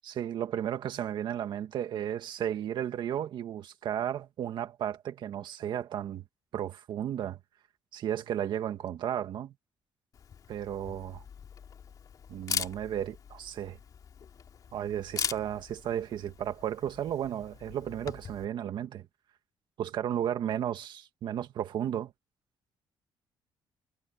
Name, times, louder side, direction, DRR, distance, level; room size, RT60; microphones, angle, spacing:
voice 1, 0.0-6.2 6.5-7.4 7.9-9.5 10.5-11.2 12.3-13.8 14.7-19.1 19.8-22.1, right 10 dB, 60° right, 2.1 m, -34 dB
Camera, 10.1-18.5, left 7 dB, 45° left, 3.2 m, -40 dB
cardioid pair, 155°, 9 cm